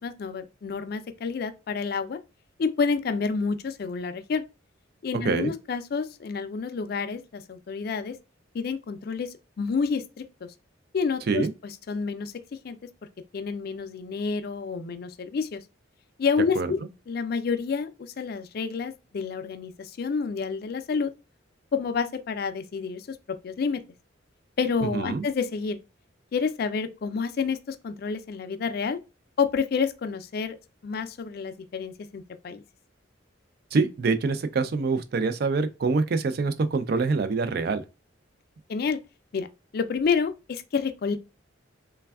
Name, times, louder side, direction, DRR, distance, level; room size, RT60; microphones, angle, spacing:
voice 1, 0.0-2.2 2.6-4.4 5.0-8.1 8.5-9.3 9.6-10.5 10.9-12.3 12.6-12.8 13.3-15.6 16.2-21.1 21.7-23.2 23.4-23.8 24.6-25.8 26.3-29.0 29.4-30.6 30.8-32.6 38.7-39.0 39.3-39.5 39.7-41.2, left 5 dB, 50° left, 0.3 m, -29 dB
voice 2, 24.9-25.2 33.7-37.8, right 4 dB, 50° right, 0.4 m, -25 dB
3.3 x 2.2 x 2.2 m
head